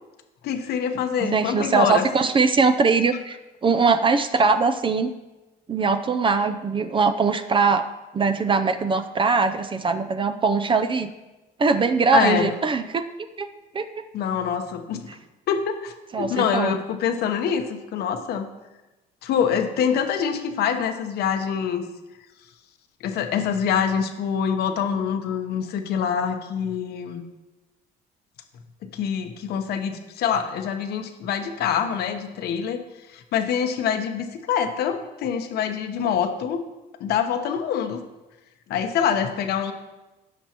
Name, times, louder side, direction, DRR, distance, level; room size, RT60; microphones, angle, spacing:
voice 1, 0.4-2.1 12.1-12.5 14.1-15.1 15.5-18.5 19.2-21.9 23.0-27.2 28.8-32.8 33.1-36.6 37.0-38.0 38.7-39.7, left 7 dB, 70° left, 7 dB, 0.9 m, -25 dB
voice 2, 1.2-3.4 3.6-5.1 5.7-7.9 8.1-11.1 11.6-13.0 13.4-13.5 13.7-13.9 16.1-16.7, right 4 dB, 30° right, 9 dB, 0.5 m, -21 dB
16.0 x 6.0 x 2.9 m, 1.1 s
cardioid pair, 110°, 17 cm